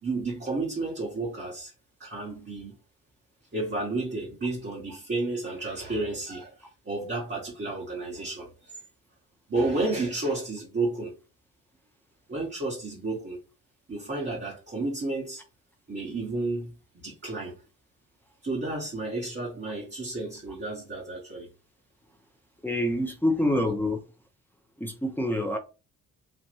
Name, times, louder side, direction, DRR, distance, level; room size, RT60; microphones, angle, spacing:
voice 1, 0.0-1.7 2.0-2.8 3.5-8.8 9.5-11.2 12.3-13.4 13.9-15.4 15.9-16.7 17.0-17.6 18.4-21.5, right 2 dB, 25° right, 1.1 m, -31 dB
voice 2, 22.6-24.0 24.8-25.6, left 1 dB, 5° left, 0.7 m, -26 dB
3.5 x 2.5 x 2.6 m
figure-of-eight pair, 45°, 47 cm